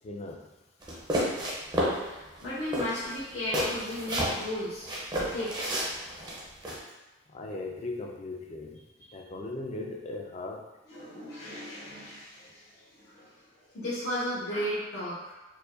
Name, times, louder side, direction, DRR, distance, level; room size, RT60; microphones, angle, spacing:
voice 1, 0.0-0.5 7.3-8.9 9.1-10.6, left 2 dB, 30° left, 1 dB, 0.4 m, -38 dB
sound 1, 0.8-2.0 2.3-2.5 2.7-4.4 4.8-6.8, equal, 20° right, 0.5 m, -30 dB
voice 2, 2.0-4.9 5.3-5.8 10.9-12.6 13.1-13.3 13.7-15.4, left 1 dB, 85° left, -11 dB, 1.0 m, -35 dB
4.7 x 2.2 x 2.5 m, 1.1 s
head